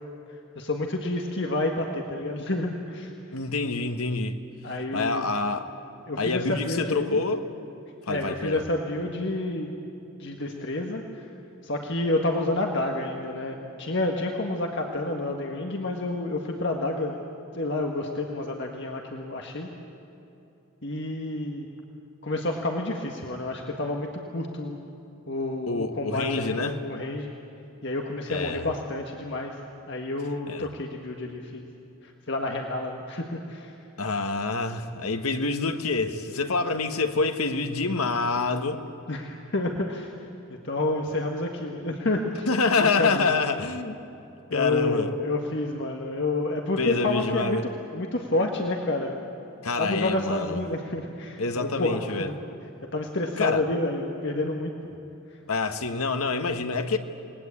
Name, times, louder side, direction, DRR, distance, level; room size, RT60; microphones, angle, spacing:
voice 1, 0.6-3.1 4.6-5.3 6.1-7.2 8.1-9.8 10.2-11.3 11.6-17.2 17.5-19.7 20.8-21.7 22.2-24.9 25.3-27.3 27.8-29.6 29.9-31.6 32.0-33.7 39.1-40.1 40.5-42.5 42.8-43.4 44.5-47.6 47.9-49.2 49.8-52.4 52.9-54.7, left 2 dB, 55° left, 1.7 m, -29 dB
voice 2, 3.3-4.4 4.9-5.7 6.2-7.4 8.1-8.6 25.7-26.8 28.3-28.7 30.5-30.7 34.0-38.8 42.5-44.0 44.5-45.1 46.8-47.6 49.6-50.6 51.4-52.3 53.4-53.6 55.5-57.0, left 3 dB, 85° left, 1.5 m, -26 dB
28.5 x 20.0 x 8.5 m
head